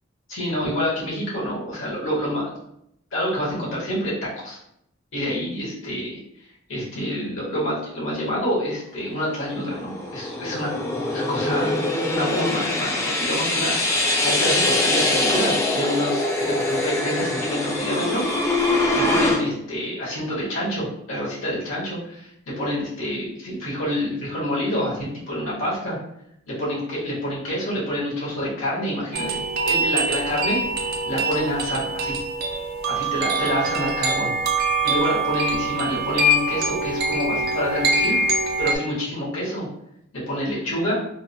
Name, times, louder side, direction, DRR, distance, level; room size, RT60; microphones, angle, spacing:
voice 1, 0.3-2.6 3.1-4.6 5.1-6.2 6.7-10.7 11.1-18.2 19.1-22.3 22.6-26.0 26.5-32.2 32.9-34.3 34.8-38.2 38.6-39.7 40.3-40.9, equal, 85° left, -6 dB, 1.4 m, -27 dB
sound 1, 9.3-19.4, left 2 dB, 15° left, 0.4 m, -23 dB
sound 2, 29.1-38.8, right 2 dB, 55° right, 0.5 m, -24 dB
3.5 x 2.1 x 2.7 m, 0.76 s
head